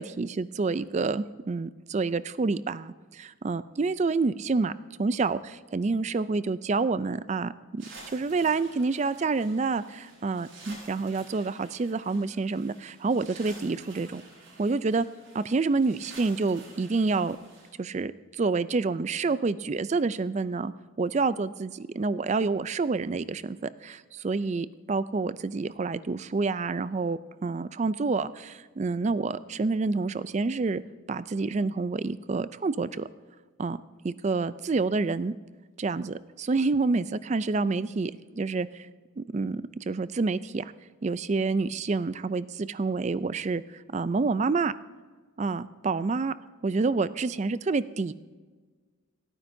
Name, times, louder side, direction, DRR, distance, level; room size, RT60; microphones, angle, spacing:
voice 1, 0.0-4.7 5.0-7.8 8.1-14.2 14.6-15.1 15.3-17.4 17.8-20.7 21.0-30.8 31.1-33.1 33.6-33.8 34.0-35.3 35.8-38.9 39.2-40.7 41.0-44.7 45.4-46.3 46.6-48.1, right 3 dB, 35° right, 15 dB, 0.3 m, -28 dB
sound 1, 7.8-17.7, right 3 dB, 70° right, 5.0 m, -50 dB
28.5 x 9.7 x 2.7 m, 1.4 s
head